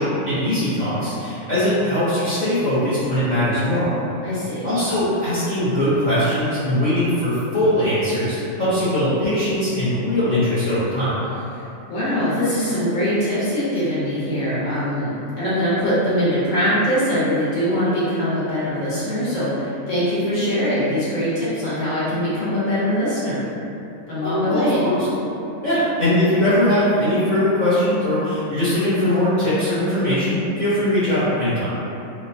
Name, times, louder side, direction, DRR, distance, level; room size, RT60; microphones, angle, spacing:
voice 1, 0.0-3.9 4.6-11.1 24.2-25.1 25.6-31.7, left 1 dB, 40° left, -15 dB, 0.7 m, -20 dB
voice 2, 4.2-4.7 11.5-11.6 11.9-23.4 24.1-24.8, equal, 70° left, -11 dB, 1.3 m, -22 dB
3.0 x 2.1 x 2.6 m, 2.8 s
omnidirectional pair, 1.4 m